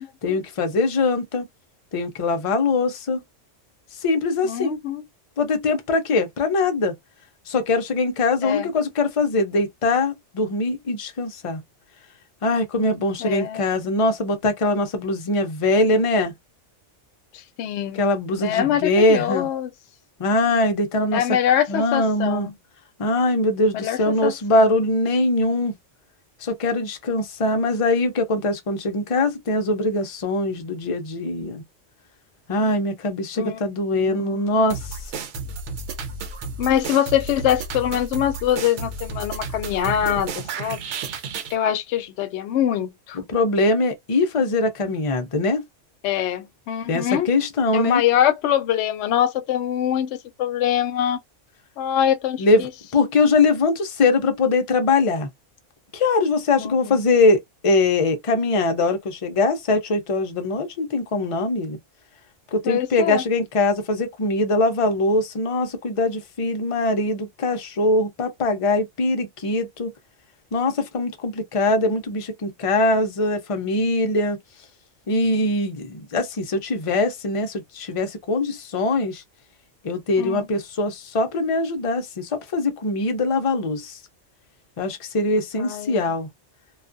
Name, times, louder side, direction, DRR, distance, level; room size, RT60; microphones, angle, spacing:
voice 1, 0.2-1.5 1.9-3.2 4.0-4.8 5.4-6.9 7.5-11.6 12.4-16.3 17.9-19.5 20.2-21.2 21.7-22.5 23.0-25.7 26.4-31.6 32.5-35.0 43.2-45.6 46.9-48.0 52.4-55.3 55.9-61.8 62.5-69.9 70.5-74.4 75.1-79.2 79.8-84.0 84.8-86.3, left 2 dB, 45° left, 0.4 m, -22 dB
voice 2, 4.4-5.0 8.4-8.7 13.2-13.6 17.3-18.1 18.4-19.7 21.1-22.5 23.7-24.3 33.4-33.6 33.9-34.6 36.6-40.8 41.5-43.2 46.0-47.3 47.7-51.2 51.8-52.7 56.6-57.0 62.6-63.2 80.2-80.5 85.6-86.1, left 10 dB, 70° left, 0.8 m, -24 dB
sound 1, 34.7-41.5, right 4 dB, 70° right, 0.9 m, -32 dB
2.3 x 2.3 x 2.5 m
omnidirectional pair, 1.3 m